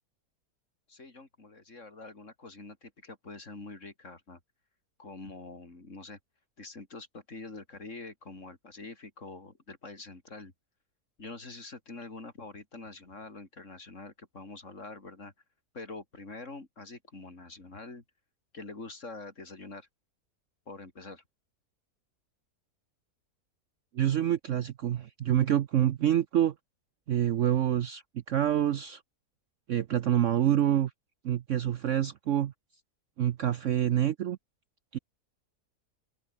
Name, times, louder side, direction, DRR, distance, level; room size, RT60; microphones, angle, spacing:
voice 1, 0.9-4.4 5.0-6.2 6.6-10.5 11.2-15.3 15.7-18.0 18.5-19.9 20.7-21.2, left 3 dB, 50° left, 3.9 m, -45 dB
voice 2, 23.9-26.5 27.1-28.0 28.3-29.0 29.7-30.9 31.2-32.5 33.2-34.4 34.9-35.0, right 11 dB, 60° right, 0.9 m, -26 dB
open air
omnidirectional pair, 1.7 m